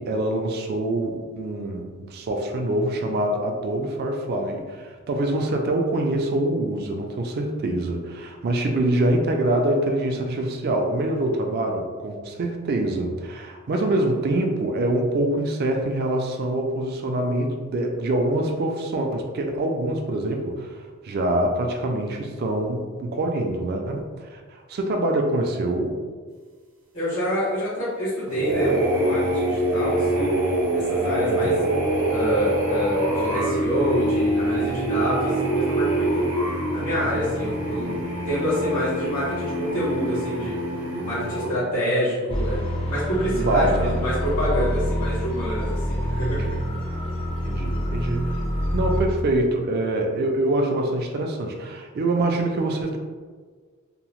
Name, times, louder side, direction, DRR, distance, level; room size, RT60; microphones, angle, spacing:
voice 1, 0.0-26.0 31.2-31.5 43.3-44.0 46.2-46.6 47.4-48.4 48.7-53.0, right 1 dB, 45° right, 2 dB, 0.3 m, -25 dB
voice 2, 26.9-30.3 30.7-31.5 32.1-36.2 36.7-38.0 38.3-40.5 41.0-42.6 42.9-46.6, equal, 80° left, -9 dB, 1.1 m, -27 dB
sound 1, 28.3-41.5, right 1 dB, 75° right, 0.7 m, -25 dB
sound 2, 42.3-49.0, equal, 25° left, 0.4 m, -26 dB
2.8 x 2.0 x 2.9 m, 1.5 s
head